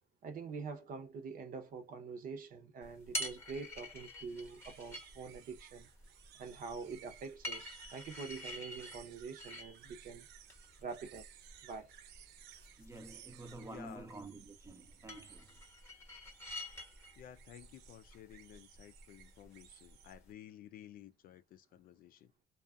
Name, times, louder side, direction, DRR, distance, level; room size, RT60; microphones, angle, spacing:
voice 1, 0.2-5.9 6.4-10.3 10.8-11.3 11.6-11.9, right 5 dB, 55° right, 0.8 m, -45 dB
sound 1, 2.8-20.3, left 1 dB, 15° left, 0.9 m, -49 dB
sound 2, 4.3-20.1, right 12 dB, 85° right, 0.4 m, -59 dB
voice 2, 12.8-15.6, right 2 dB, 15° right, 0.6 m, -50 dB
voice 3, 13.7-14.1 17.2-22.3, left 10 dB, 60° left, 0.4 m, -54 dB
2.5 x 2.3 x 2.3 m
cardioid pair, 110°, 17 cm